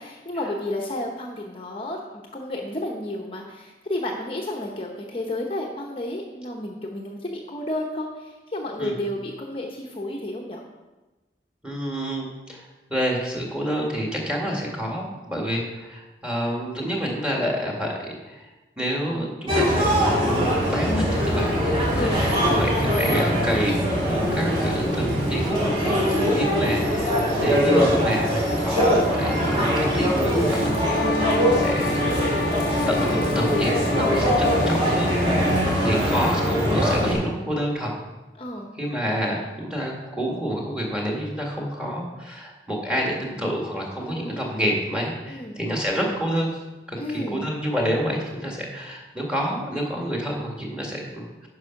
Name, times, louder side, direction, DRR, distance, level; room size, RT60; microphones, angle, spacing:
voice 1, 0.0-2.0 2.3-10.6 21.9-22.2 22.5-22.7 26.2-26.6 35.6-35.8 38.4-38.7 44.0-44.5 45.3-45.6 47.0-47.4, left 1 dB, 30° left, 0 dB, 0.8 m, -31 dB
voice 2, 11.6-18.5 18.8-19.9 20.7-23.7 24.0-31.2 31.5-31.9 32.9-37.9 38.7-46.6 46.9-51.5, equal, 5° right, -1 dB, 1.7 m, -28 dB
sound 1, 19.5-37.1, equal, 35° right, 3.0 m, -22 dB
sound 2, 30.4-35.8, left 3 dB, 85° left, 0.7 m, -29 dB
9.6 x 5.6 x 5.8 m, 1.1 s
head